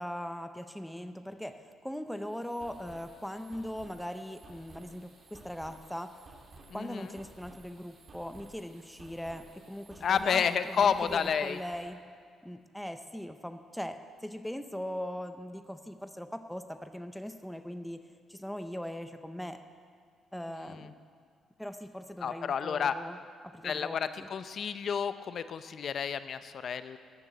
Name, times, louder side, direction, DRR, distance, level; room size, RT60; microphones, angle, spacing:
voice 1, 0.0-6.3 6.7-12.0 12.4-19.6 20.3-21.0 21.6-23.2 23.4-24.3, equal, 5° left, 8 dB, 0.7 m, -40 dB
sound 1, 2.1-11.9, right 2 dB, 45° right, 2.6 m, -55 dB
voice 2, 6.7-7.0 10.0-11.6 20.6-20.8 22.2-22.9 23.6-27.0, left 7 dB, 55° left, 12 dB, 0.6 m, -30 dB
14.0 x 6.9 x 9.1 m, 2.1 s
cardioid pair, 90°, 0 cm